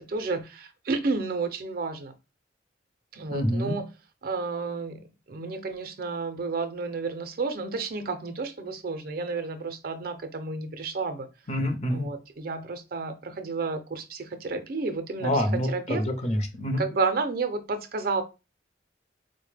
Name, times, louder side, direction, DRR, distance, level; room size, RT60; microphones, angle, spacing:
voice 1, 0.0-2.1 3.1-3.9 4.2-5.0 5.3-11.3 11.9-16.0 16.8-18.2, right 4 dB, 55° right, 0.5 m, -31 dB
voice 2, 3.3-3.7 11.5-12.1 15.2-16.8, left 1 dB, 35° left, 0.6 m, -27 dB
4.1 x 2.1 x 3.2 m
head